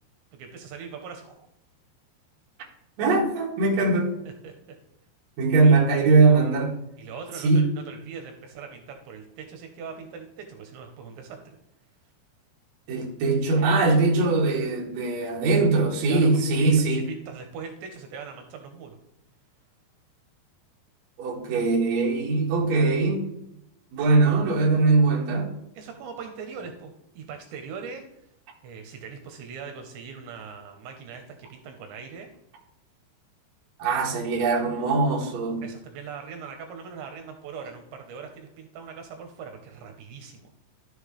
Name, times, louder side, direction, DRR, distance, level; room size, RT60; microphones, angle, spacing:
voice 1, 0.3-1.5 4.4-4.8 5.6-5.8 7.0-11.6 16.1-19.0 25.8-28.1 28.6-32.3 35.6-40.5, right 6 dB, 80° right, 5 dB, 3.1 m, -41 dB
voice 2, 3.0-4.2 5.4-6.8 7.4-7.7 12.9-17.1 21.2-23.3 23.9-25.5 33.8-35.7, right 3 dB, 50° right, -1 dB, 2.3 m, -21 dB
12.5 x 7.1 x 3.3 m, 0.82 s
omnidirectional pair, 5.5 m